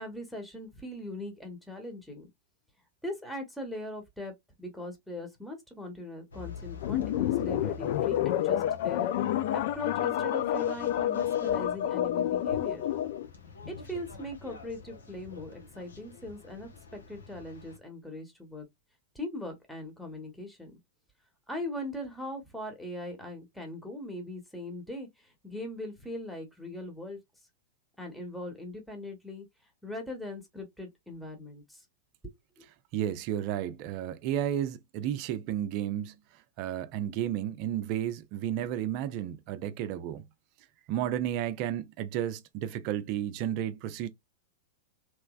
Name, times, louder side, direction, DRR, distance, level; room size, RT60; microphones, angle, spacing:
voice 1, 0.0-2.3 3.0-4.3 4.6-9.1 9.5-12.8 13.6-18.7 19.1-20.7 21.5-27.2 28.0-29.5 29.8-31.8 32.2-32.6, left 1 dB, ahead, 1.1 m, -40 dB
sound 1, 6.3-17.8, left 4 dB, 80° left, 1.0 m, -48 dB
sound 2, 6.8-13.3, left 11 dB, 60° left, 0.4 m, -29 dB
voice 2, 32.9-36.2 36.6-40.2 40.9-44.1, right 11 dB, 50° right, 0.5 m, -32 dB
3.2 x 3.0 x 2.3 m
hypercardioid pair, 100°, 0 cm